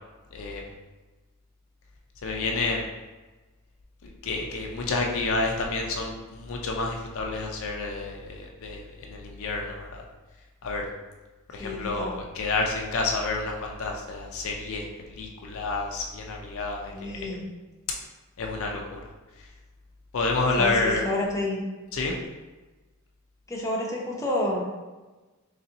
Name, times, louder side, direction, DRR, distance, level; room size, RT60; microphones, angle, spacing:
voice 1, 0.3-0.6 2.2-2.9 4.0-10.0 10.6-10.9 11.5-17.4 18.4-19.0 20.1-21.1 21.9-22.1, left 3 dB, 65° left, 1 dB, 0.5 m, -29 dB
voice 2, 11.6-12.1 16.9-17.5 20.6-21.6 23.5-24.6, left 1 dB, 15° left, -3 dB, 0.7 m, -29 dB
4.0 x 3.3 x 2.7 m, 1.2 s
head